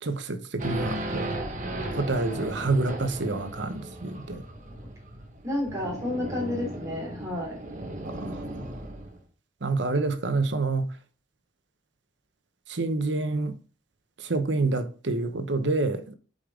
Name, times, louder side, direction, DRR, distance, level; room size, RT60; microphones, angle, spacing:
voice 1, 0.0-1.4 2.0-4.4 8.0-8.7 9.6-10.9 12.7-13.6 14.2-16.1, right 3 dB, 75° right, 1.0 m, -28 dB
Race car auto racing / Idling / Accelerating revving vroom, 0.6-9.2, right 1 dB, 45° right, 1.4 m, -36 dB
voice 2, 5.4-7.6, left 1 dB, 15° right, 3.4 m, -31 dB
8.3 x 5.3 x 3.8 m
head